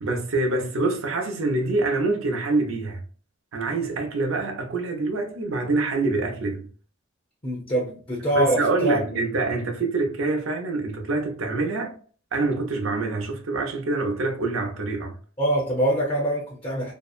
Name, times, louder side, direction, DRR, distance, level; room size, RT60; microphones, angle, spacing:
voice 1, 0.0-3.0 3.5-6.7 8.3-11.9 12.3-15.2, right 3 dB, 90° right, 0.6 m, -25 dB
voice 2, 7.4-9.2 15.4-16.9, right 1 dB, 25° left, 0.7 m, -24 dB
2.7 x 2.1 x 2.4 m
head